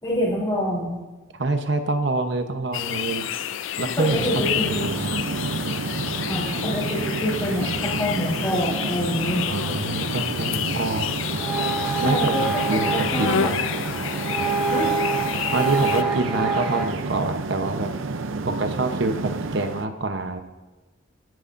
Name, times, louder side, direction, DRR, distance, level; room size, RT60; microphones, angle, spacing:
voice 1, 0.0-0.9 4.0-5.0 6.3-9.4 12.0-13.5 14.7-14.9, left 1 dB, 20° left, -5 dB, 3.5 m, -26 dB
voice 2, 1.3-3.3 3.8-5.2 9.5-11.1 12.0-13.6 15.5-17.9 18.5-20.4, right 2 dB, 60° right, 7 dB, 1.0 m, -26 dB
sound 1, 2.7-16.0, left 9 dB, 70° left, 0.4 m, -30 dB
sound 2, 4.1-19.9, right 3 dB, 75° right, 0.6 m, -30 dB
sound 3, 11.2-16.8, right 4 dB, ahead, 3.9 m, -27 dB
24.5 x 11.0 x 2.6 m, 1.2 s
head